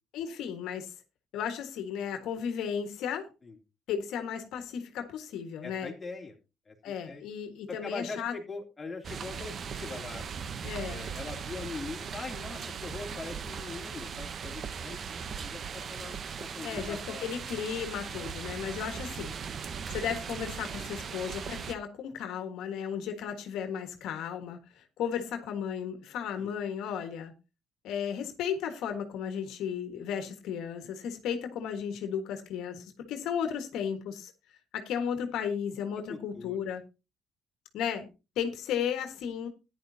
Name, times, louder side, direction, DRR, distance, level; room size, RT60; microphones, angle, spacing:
voice 1, 0.1-0.9 1.3-3.3 3.9-5.9 6.8-8.3 10.6-11.0 16.6-19.4 19.9-27.3 27.8-34.3 34.7-36.8 37.7-38.1 38.3-39.5, left 8 dB, 75° left, 1.5 m, -34 dB
voice 2, 5.6-6.4 6.6-7.2 7.7-10.2 10.9-15.0 15.4-17.3 18.1-18.4 26.4-26.5 36.1-36.6, left 4 dB, 20° left, 2.9 m, -42 dB
sound 1, 9.0-21.7, right 6 dB, 40° right, 0.8 m, -39 dB
15.0 x 10.5 x 2.8 m
cardioid pair, 125°, 0 cm